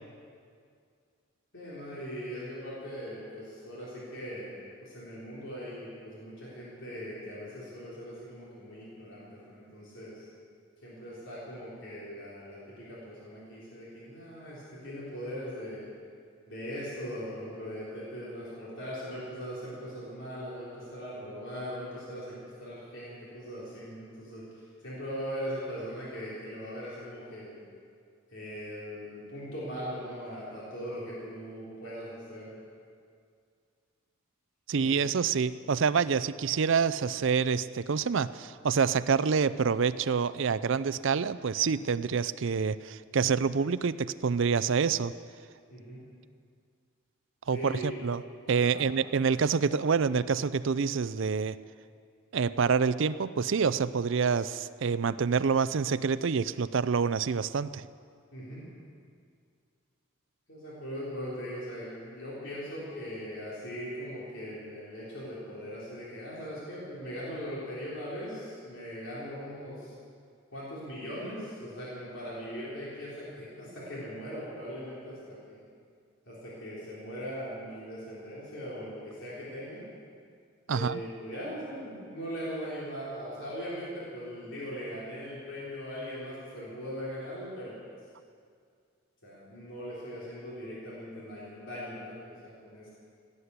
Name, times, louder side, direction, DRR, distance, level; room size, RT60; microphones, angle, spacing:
voice 1, 1.5-10.3 10.8-15.9 16.5-27.7 28.3-32.6 34.7-35.1 45.7-46.1 47.5-48.0 48.6-48.8 58.3-58.6 60.5-69.9 70.5-75.6 76.3-79.8 80.7-87.7 89.2-92.9, equal, 60° left, -8 dB, 3.9 m, -40 dB
voice 2, 34.7-45.1 47.5-48.2 48.5-51.6 52.3-57.9 80.7-81.0, right 5 dB, 60° right, 15 dB, 0.4 m, -27 dB
17.5 x 9.6 x 8.2 m, 2.2 s
head